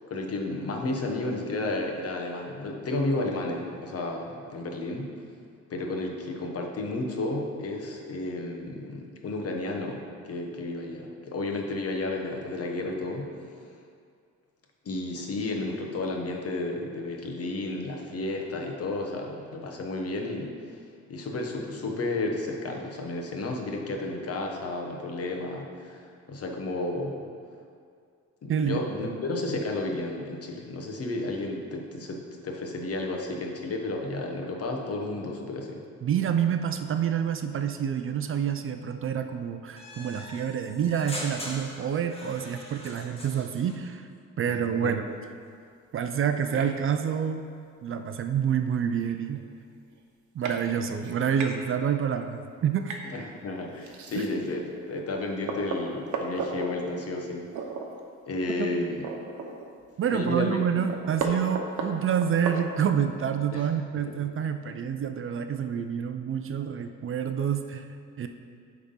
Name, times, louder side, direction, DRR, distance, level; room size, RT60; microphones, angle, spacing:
voice 1, 0.1-5.1 5.7-13.3 14.8-20.5 21.1-27.3 28.4-35.8 44.5-44.9 53.0-57.5 58.3-59.0 60.1-60.6 63.5-63.7 64.1-64.2, left 2 dB, 50° left, 1 dB, 1.2 m, -32 dB
voice 2, 28.5-29.1 36.0-44.1 44.4-45.1 45.9-47.4 47.8-49.4 50.3-53.0 54.2-54.3 58.6-58.7 60.0-67.8 68.2-68.3, right 8 dB, 45° right, 8 dB, 0.5 m, -28 dB
sound 1, 39.8-43.8, left 1 dB, 20° left, 1.5 m, -41 dB
sound 2, 46.5-46.7 48.2-48.3 48.8-48.9 49.1-49.4 50.0-50.1 50.4-50.6 51.0-51.5 52.8-53.1 53.8-54.5 55.0-55.1 55.5-56.7 57.5-57.9 58.2-58.3 58.7-59.9 60.2-60.3 60.6-63.1, right 5 dB, 75° right, 0.9 m, -34 dB
8.6 x 3.7 x 5.5 m, 2.2 s
cardioid pair, 90°, 30 cm